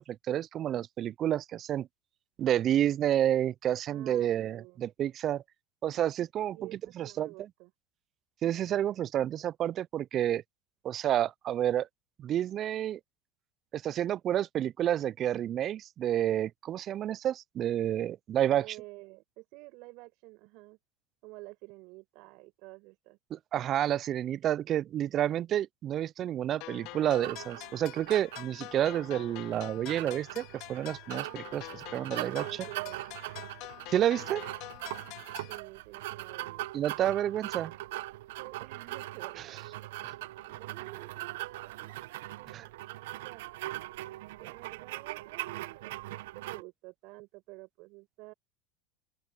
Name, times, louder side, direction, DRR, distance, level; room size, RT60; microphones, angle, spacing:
voice 1, 0.0-1.9 2.4-5.4 5.8-6.6 7.0-7.3 8.4-10.4 10.8-11.9 12.2-13.0 13.7-18.8 23.3-32.4 33.9-34.4 36.7-37.7 40.0-40.1 42.5-42.7, right 11 dB, 40° right, 0.4 m, -30 dB
voice 2, 3.9-4.8 6.5-7.7 18.5-20.8 21.2-23.2 32.1-33.1 35.5-36.6 38.4-39.7 40.4-41.7 42.0-42.1 42.3-42.7 43.1-43.4 44.4-48.3, right 24 dB, 65° right, 5.6 m, -49 dB
sound 1, 26.6-35.6, left 21 dB, 60° left, 3.1 m, -46 dB
sound 2, 27.2-46.6, right 17 dB, 80° right, 1.0 m, -41 dB
open air
hypercardioid pair, 100°, 0 cm